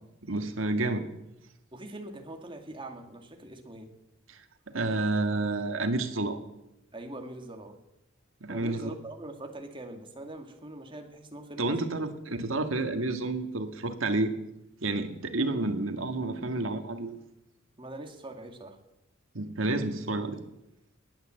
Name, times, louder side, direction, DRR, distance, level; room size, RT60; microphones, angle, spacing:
voice 1, 0.2-1.1 4.3-4.4 4.7-6.4 8.4-8.9 11.6-14.3 14.8-17.2 19.3-20.4, right 2 dB, 80° right, 7 dB, 1.7 m, -30 dB
voice 2, 1.7-3.9 6.9-7.8 8.5-12.0 17.8-18.8, right 1 dB, 25° right, 4 dB, 2.1 m, -42 dB
19.5 x 9.4 x 7.7 m, 0.87 s
head